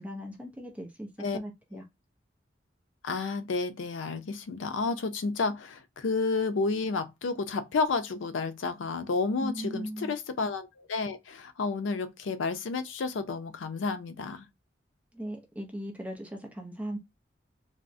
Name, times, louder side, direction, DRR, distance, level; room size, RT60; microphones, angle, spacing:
voice 1, 0.0-1.8 9.4-10.1 15.1-17.0, equal, 5° right, 0.4 m, -38 dB
voice 2, 3.0-14.5, left 4 dB, 90° left, 0.5 m, -31 dB
3.4 x 2.0 x 2.5 m
head